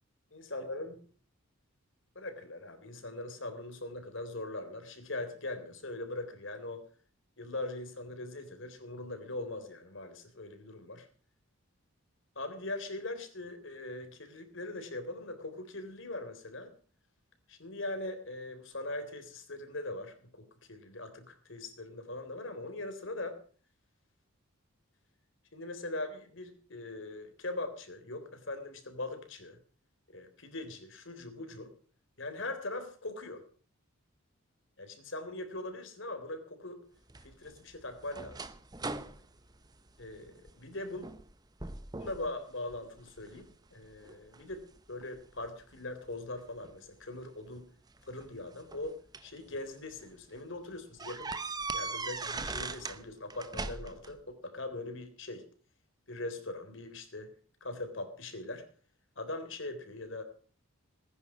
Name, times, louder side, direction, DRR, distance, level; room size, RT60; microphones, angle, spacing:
voice 1, 0.3-1.0 2.2-6.8 7.4-11.1 12.4-16.7 17.5-23.4 25.5-29.6 30.1-31.7 32.2-33.4 34.8-36.8 37.2-38.5 40.0-41.1 42.0-47.7 48.0-49.0 49.2-51.3 51.7-55.5 56.1-57.4 57.6-58.7 59.2-60.2, left 2 dB, 60° left, 7 dB, 3.5 m, -41 dB
sound 1, 37.1-40.5 41.0-41.3 41.6-42.3 42.7-43.4 44.0-45.5 46.6-46.8 48.0-49.4 49.9-50.1 50.4-50.5 51.0-53.0 53.3-54.1, right 3 dB, 20° right, 0.8 m, -40 dB
19.0 x 10.5 x 6.2 m, 0.43 s
head